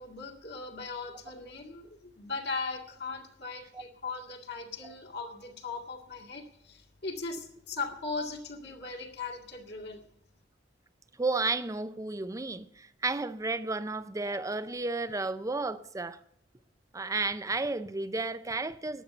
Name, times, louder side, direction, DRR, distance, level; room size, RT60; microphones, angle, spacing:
voice 1, 0.0-10.0, left 4 dB, 60° left, 2.1 m, -38 dB
voice 2, 11.2-16.2 16.9-19.0, right 3 dB, 15° right, 0.5 m, -32 dB
12.5 x 9.3 x 7.8 m
head